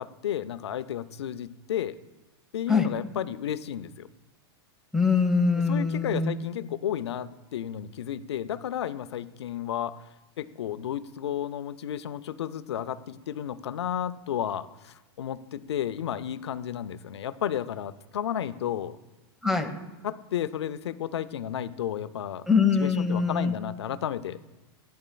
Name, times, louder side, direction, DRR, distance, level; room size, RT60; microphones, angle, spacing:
voice 1, 0.0-2.0 2.5-4.1 5.7-10.0 10.4-19.0 20.0-22.5 22.8-24.5, left 10 dB, 85° left, 13 dB, 0.5 m, -32 dB
voice 2, 4.9-6.3 19.4-19.7 22.5-23.5, left 5 dB, 5° right, 7 dB, 1.0 m, -23 dB
12.5 x 10.0 x 2.3 m, 1.1 s
hypercardioid pair, 115°, 14 cm